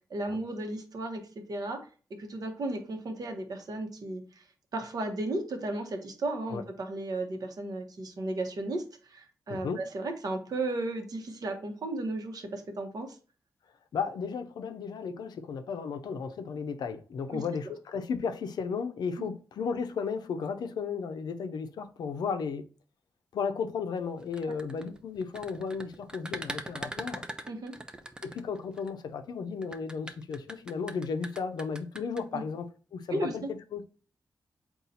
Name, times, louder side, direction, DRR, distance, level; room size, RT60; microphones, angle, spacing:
voice 1, 0.1-1.2 1.5-1.8 2.1-4.4 4.7-13.2 17.3-17.4 19.2-19.3 27.5-27.7 32.3-32.4 33.1-33.5, right 2 dB, 65° right, 0.9 m, -34 dB
voice 2, 13.9-22.6 23.3-27.2 28.2-33.4 33.7-33.8, left 5 dB, 85° left, 0.4 m, -34 dB
sound 1, 24.2-28.9 29.6-32.2, right 1 dB, 10° right, 0.4 m, -41 dB
4.1 x 2.3 x 3.9 m
cardioid pair, 75°, 7 cm